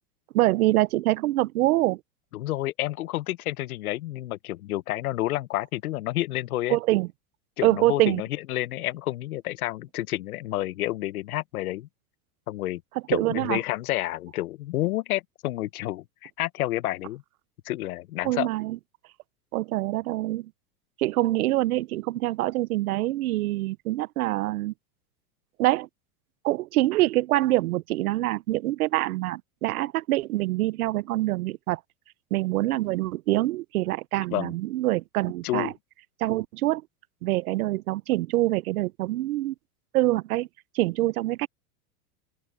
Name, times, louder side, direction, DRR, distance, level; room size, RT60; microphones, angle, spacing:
voice 1, 0.3-2.0 6.7-7.1 7.6-8.2 13.1-13.6 18.2-18.8 19.5-20.5 21.0-24.7 25.6-25.9 26.4-31.8 32.3-35.7 36.2-36.8 37.2-39.5 39.9-40.5 40.7-41.5, right 17 dB, 85° right, 0.8 m, -25 dB
voice 2, 2.3-6.8 7.6-11.9 12.5-12.8 13.1-17.2 17.6-18.5 34.3-34.5 35.4-35.7, left 16 dB, 90° left, 1.1 m, -30 dB
open air
supercardioid pair, 135°, 43 cm